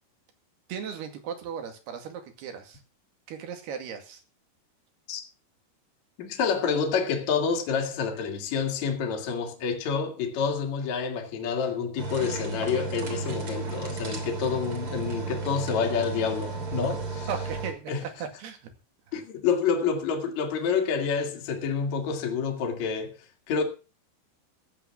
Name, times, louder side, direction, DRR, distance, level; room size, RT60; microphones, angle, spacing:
voice 1, 0.7-2.8 3.3-4.2 17.3-18.7 19.1-19.2, right 7 dB, 65° right, 4.0 m, -37 dB
voice 2, 6.2-17.3 17.9-18.0 19.1-23.6, left 6 dB, 45° left, 3.1 m, -28 dB
sound 1, 12.0-17.7, right 3 dB, 35° right, 3.5 m, -33 dB
15.5 x 8.1 x 5.9 m
omnidirectional pair, 5.0 m